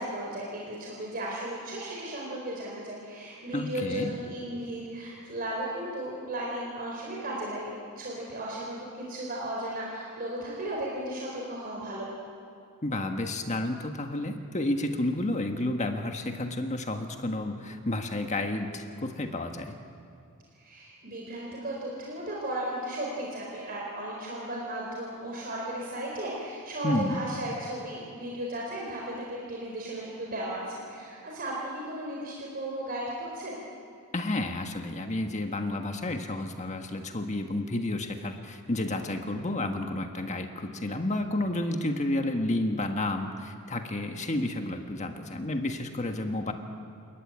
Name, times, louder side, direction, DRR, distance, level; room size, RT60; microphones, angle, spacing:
voice 1, 0.0-7.6 8.0-12.1 20.5-33.6, right 1 dB, 40° right, -3 dB, 4.3 m, -35 dB
voice 2, 3.5-4.1 12.8-19.8 26.8-27.2 34.1-46.5, left 1 dB, 30° left, 5 dB, 1.5 m, -31 dB
29.0 x 14.0 x 9.5 m, 2.5 s
head